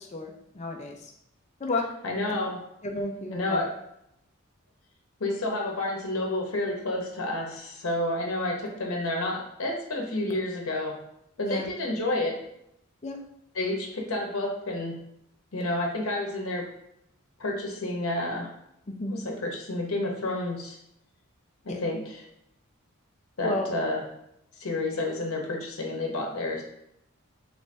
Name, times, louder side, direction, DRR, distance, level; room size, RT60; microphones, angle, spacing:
voice 1, 0.1-1.0 1.6-1.8 2.8-3.6 11.4-11.7 13.0-13.2 18.9-19.2 21.7-21.8 23.4-23.7, left 2 dB, 30° left, 1 dB, 0.5 m, -31 dB
voice 2, 2.0-2.6 3.3-3.7 5.2-11.0 11.4-12.4 13.5-15.0 15.5-16.7 17.4-18.5 19.1-20.8 21.6-22.2 23.4-24.1 24.6-26.6, left 2 dB, 80° left, 0 dB, 0.8 m, -30 dB
3.1 x 2.6 x 3.3 m, 0.79 s
head